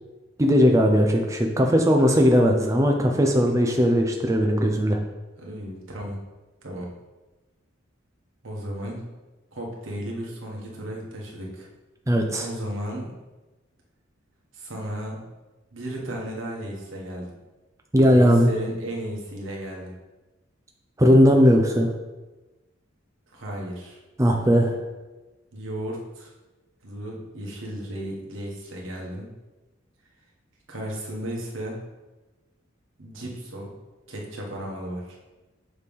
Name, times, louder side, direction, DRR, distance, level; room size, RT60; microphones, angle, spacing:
voice 1, 0.4-5.0 12.1-12.5 17.9-18.5 21.0-21.9 24.2-24.8, equal, 15° right, 1 dB, 0.5 m, -18 dB
voice 2, 5.4-6.2 6.6-6.9 8.4-9.0 9.5-11.7 12.4-13.1 14.5-15.2 15.7-17.4 18.0-20.0 23.3-24.0 25.5-26.3 26.8-29.3 30.7-31.8 33.0-33.8 34.1-35.2, right 1 dB, 75° right, -2 dB, 1.5 m, -34 dB
6.7 x 3.3 x 5.3 m, 1.1 s
head